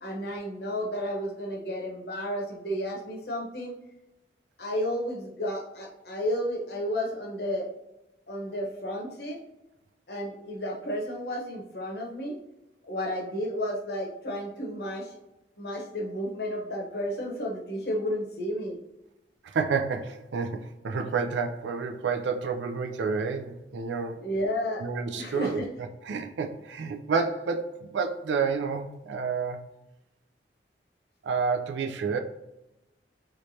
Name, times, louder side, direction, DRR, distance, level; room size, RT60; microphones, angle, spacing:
voice 1, 0.0-3.7 4.6-7.7 8.3-9.4 10.1-12.4 12.9-15.2 15.6-18.8 24.2-24.8 25.1-25.7, equal, 65° left, 0 dB, 0.8 m, -32 dB
voice 2, 19.4-24.2 24.8-29.7 31.2-32.2, right 5 dB, 90° right, 6 dB, 0.4 m, -30 dB
3.1 x 3.1 x 2.7 m, 0.95 s
head